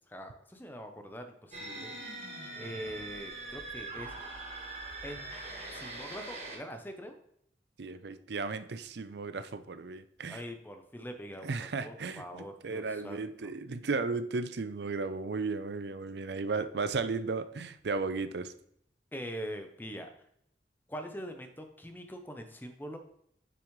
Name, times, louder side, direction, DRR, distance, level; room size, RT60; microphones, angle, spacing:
voice 1, 0.1-1.9 2.5-4.4 5.0-5.2 5.7-7.2 10.3-13.3 19.1-20.1 20.9-23.0, equal, 10° left, 6 dB, 0.7 m, -43 dB
sound 1, 1.5-6.6, right 2 dB, 35° right, 1.5 m, -42 dB
voice 2, 7.8-10.4 11.4-18.5, right 4 dB, 75° right, 12 dB, 0.5 m, -35 dB
6.9 x 6.2 x 3.1 m, 0.70 s
head